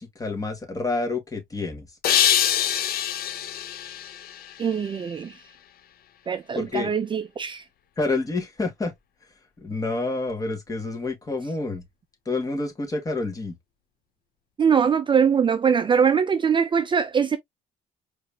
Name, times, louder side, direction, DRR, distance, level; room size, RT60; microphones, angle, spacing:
voice 1, 0.0-1.9 6.6-6.9 8.0-8.9 9.6-11.8 12.3-13.6, left 3 dB, 20° left, 2.3 m, -28 dB
sound 1, 2.0-5.2, left 10 dB, 65° left, 0.8 m, -25 dB
voice 2, 4.6-5.4 6.3-7.6 14.6-17.4, right 7 dB, 30° right, 0.5 m, -22 dB
4.9 x 3.4 x 2.9 m
cardioid pair, 110°, 17 cm